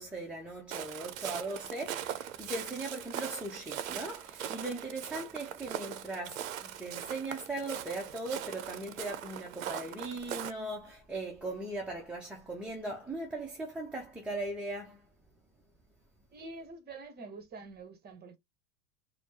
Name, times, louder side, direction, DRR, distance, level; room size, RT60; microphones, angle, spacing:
voice 1, 0.0-15.1, right 2 dB, ahead, 0.7 m, -39 dB
Walk footsteps, 0.7-10.5, right 10 dB, 60° right, 0.7 m, -40 dB
voice 2, 16.3-18.4, right 3 dB, 20° right, 1.1 m, -46 dB
4.2 x 2.2 x 2.8 m
figure-of-eight pair, 85°, 45 cm